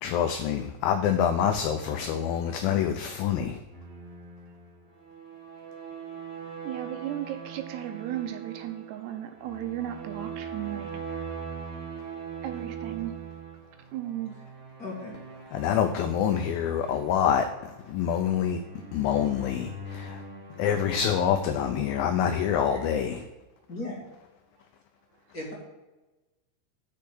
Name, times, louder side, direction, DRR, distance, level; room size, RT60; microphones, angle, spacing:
voice 1, 0.0-3.6 15.5-17.5 17.9-18.6 18.9-20.2 20.6-23.2, left 8 dB, 85° left, 2.1 m, -26 dB
sound 1, 3.7-22.5, right 4 dB, 20° right, 3.1 m, -42 dB
voice 2, 6.4-11.3 12.4-13.2 13.9-14.4 19.0-19.1, right 12 dB, 80° right, 2.9 m, -36 dB
voice 3, 14.8-15.2 22.7-22.8 23.7-24.0 25.3-25.5, left 2 dB, 30° left, 1.9 m, -36 dB
6.6 x 6.5 x 7.0 m
omnidirectional pair, 4.9 m